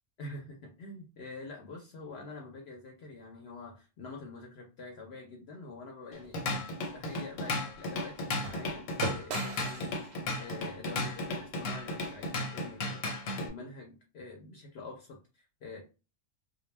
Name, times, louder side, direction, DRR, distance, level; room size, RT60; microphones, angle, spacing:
voice 1, 0.2-13.0 13.4-15.8, left 3 dB, 60° left, 0 dB, 0.8 m, -46 dB
Drum kit / Drum, 6.1-13.5, left 2 dB, 85° left, 1.1 m, -35 dB
sound 1, 6.2-12.4, right 4 dB, 65° right, 0.7 m, -43 dB
2.1 x 2.1 x 3.2 m, 0.31 s
omnidirectional pair, 1.3 m